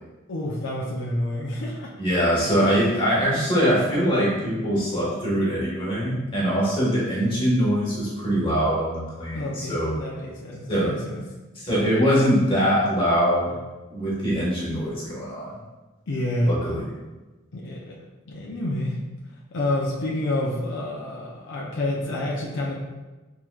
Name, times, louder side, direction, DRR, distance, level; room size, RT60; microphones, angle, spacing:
voice 1, 0.3-1.9 2.6-3.0 9.3-11.2 16.1-16.6 17.5-18.0 18.3-19.0 19.5-22.7, left 1 dB, 65° left, -4 dB, 0.6 m, -28 dB
voice 2, 2.0-10.0 10.7-10.9 11.6-13.5 13.9-15.6 16.5-16.8, equal, 25° left, -7 dB, 1.5 m, -23 dB
4.5 x 3.8 x 2.4 m, 1.1 s
head